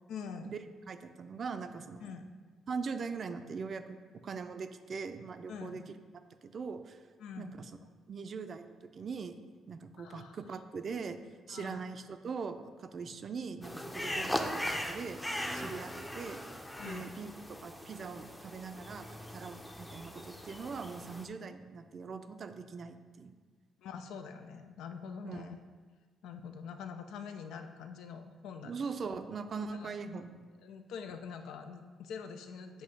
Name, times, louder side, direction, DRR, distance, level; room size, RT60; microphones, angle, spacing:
voice 1, 0.1-0.6 2.0-2.3 5.5-5.9 7.2-7.6 10.0-10.4 11.5-11.8 14.0-14.4 16.8-17.1 23.8-25.6 26.2-28.8 29.8-29.9 30.6-32.8, left 6 dB, 85° left, 7 dB, 0.5 m, -45 dB
voice 2, 0.9-2.2 2.7-4.0 4.2-6.0 6.4-7.0 7.4-7.7 8.1-9.4 9.7-11.2 11.5-15.2 15.5-16.5 16.9-23.4 25.2-25.5 28.6-30.7, right 5 dB, 50° right, 8 dB, 0.4 m, -41 dB
sound 1, 13.6-21.2, equal, 10° left, 0.6 m, -39 dB
7.6 x 2.7 x 5.2 m, 1.5 s
cardioid pair, 90°, 0 cm